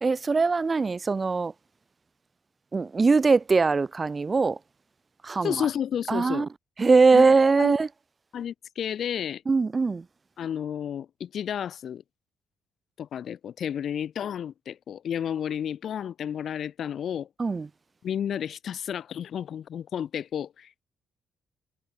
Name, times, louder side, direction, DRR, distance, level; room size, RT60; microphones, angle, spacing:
voice 1, 0.0-1.5 2.7-4.6 5.2-5.7 6.1-6.5 6.8-7.9 9.5-10.0 17.4-17.7, right 4 dB, 30° right, 1.6 m, -21 dB
voice 2, 5.4-6.5 7.1-7.2 7.6-7.7 8.3-9.4 10.4-12.0 13.0-17.3 18.0-20.8, left 9 dB, 60° left, 4.7 m, -31 dB
cardioid pair, 90°, 0 cm